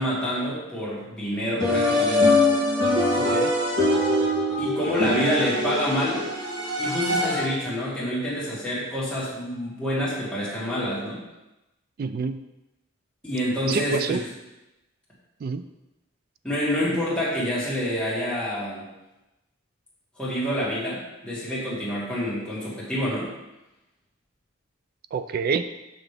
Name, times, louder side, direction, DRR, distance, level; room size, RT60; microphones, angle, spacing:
voice 1, 0.0-2.4 4.6-6.2 6.8-11.2 13.2-14.2 16.4-18.8 20.2-23.3, equal, 5° left, -8 dB, 2.1 m, -27 dB
sound 1, 1.6-7.7, left 1 dB, 80° right, 2.3 m, -23 dB
voice 2, 3.2-3.5 12.0-12.4 13.7-14.2 15.4-15.6 25.1-25.7, right 5 dB, 50° right, 11 dB, 0.3 m, -27 dB
6.5 x 6.0 x 3.4 m, 0.99 s
head